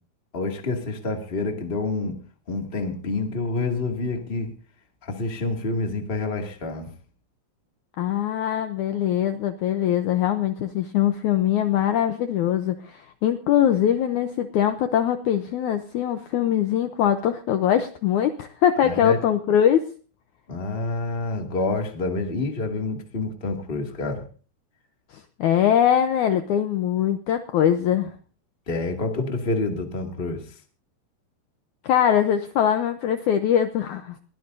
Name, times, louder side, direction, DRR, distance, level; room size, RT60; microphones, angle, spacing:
voice 1, 0.3-2.2 2.5-4.5 5.0-6.9 18.8-19.2 20.5-24.2 28.7-30.4, left 3 dB, 20° left, 2 dB, 1.7 m, -28 dB
voice 2, 8.0-19.8 25.1-28.1 31.8-34.2, left 10 dB, 85° left, 8 dB, 1.7 m, -22 dB
21.5 x 17.0 x 2.7 m, 0.40 s
omnidirectional pair, 4.5 m